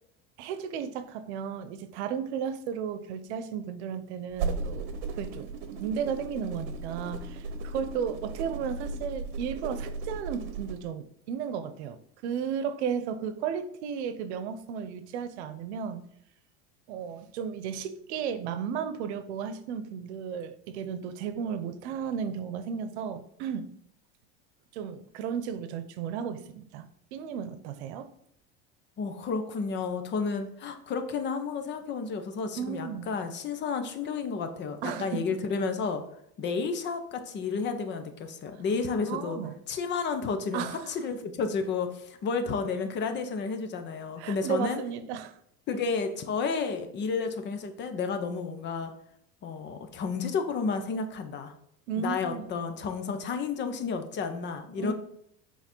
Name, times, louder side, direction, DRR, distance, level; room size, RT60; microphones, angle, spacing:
voice 1, 0.4-4.9 5.2-16.1 16.9-23.7 24.7-28.1 32.6-33.1 34.8-35.2 39.0-39.5 40.5-40.9 44.2-45.3 51.9-52.5 54.8-54.9, right 7 dB, 90° right, 0.8 m, -34 dB
sound 1, 4.3-10.8, right 3 dB, 70° right, 1.1 m, -36 dB
voice 2, 29.0-36.0 36.4-39.4 39.7-44.8 45.7-48.9 49.4-51.5 52.0-54.9, left 5 dB, 35° left, 0.9 m, -31 dB
8.4 x 4.2 x 4.5 m
supercardioid pair, 145°, 33 cm